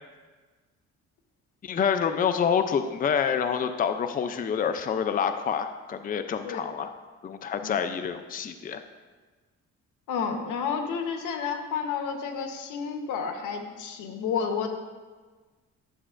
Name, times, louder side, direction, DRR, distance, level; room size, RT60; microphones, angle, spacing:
voice 1, 1.6-6.9 7.2-8.8, left 7 dB, 30° left, 9 dB, 0.4 m, -27 dB
voice 2, 10.1-14.7, left 6 dB, 85° left, 4 dB, 1.0 m, -31 dB
11.0 x 7.2 x 2.5 m, 1.4 s
cardioid pair, 90°, 30 cm